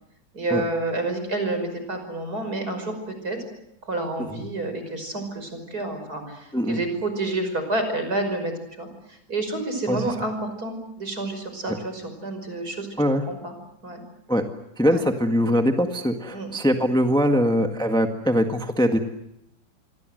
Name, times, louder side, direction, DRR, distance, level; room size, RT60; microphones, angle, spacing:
voice 1, 0.3-2.9 3.2-3.4 3.8-8.5 8.8-12.9 13.3-13.5 13.8-14.0 14.9-15.0 16.3-16.5, right 2 dB, 50° right, 7 dB, 6.1 m, -29 dB
voice 2, 14.8-19.0, equal, ahead, 5 dB, 1.6 m, -22 dB
28.0 x 23.0 x 7.9 m, 0.80 s
omnidirectional pair, 2.0 m